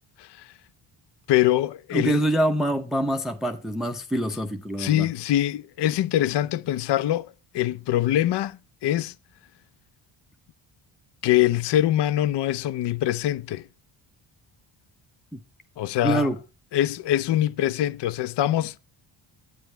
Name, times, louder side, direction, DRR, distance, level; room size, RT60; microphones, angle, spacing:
voice 1, 1.3-2.2 4.8-7.3 7.5-9.1 11.2-13.7 15.8-16.3 16.7-18.8, left 13 dB, 55° left, 0.5 m, -23 dB
voice 2, 1.9-5.1 15.3-15.4 16.0-16.4, right 1 dB, ahead, 0.6 m, -25 dB
9.4 x 7.9 x 4.5 m
cardioid pair, 80°, 50 cm